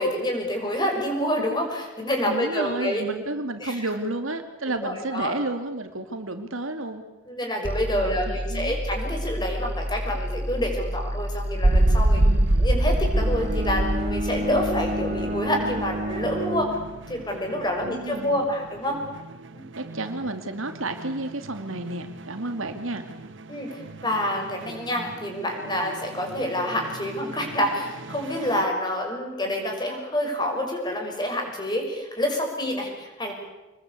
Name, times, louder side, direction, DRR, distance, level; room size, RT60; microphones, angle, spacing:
voice 1, 0.0-3.0 3.6-3.9 4.7-5.4 7.3-12.2 12.6-16.8 17.1-19.0 23.5-23.7 24.0-33.3, left 1 dB, 20° left, 2 dB, 6.0 m, -27 dB
voice 2, 2.2-7.0 7.9-8.8 12.2-12.5 17.8-18.5 19.8-23.1, right 2 dB, 75° right, 7 dB, 2.5 m, -31 dB
sound 1, 7.6-14.0, equal, 5° right, 0.9 m, -30 dB
sound 2, 11.6-28.6, right 1 dB, 60° right, 1.0 m, -28 dB
Bowed string instrument, 13.1-17.4, equal, 35° right, 1.8 m, -31 dB
26.5 x 21.0 x 8.3 m, 1.1 s
head